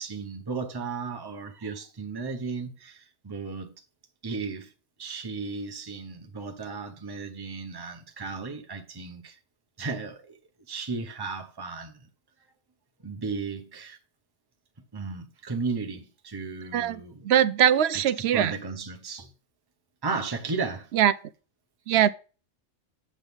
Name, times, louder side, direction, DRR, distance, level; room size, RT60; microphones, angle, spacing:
voice 1, 0.0-3.7 4.2-4.7 5.0-9.4 9.8-10.4 10.7-12.0 13.0-14.0 14.9-17.2 17.9-19.3 20.0-20.9, right 4 dB, 20° right, 0.9 m, -35 dB
voice 2, 16.7-18.5 20.9-21.1 21.9-22.1, right 10 dB, 65° right, 0.7 m, -22 dB
8.0 x 7.1 x 3.5 m
omnidirectional pair, 1.3 m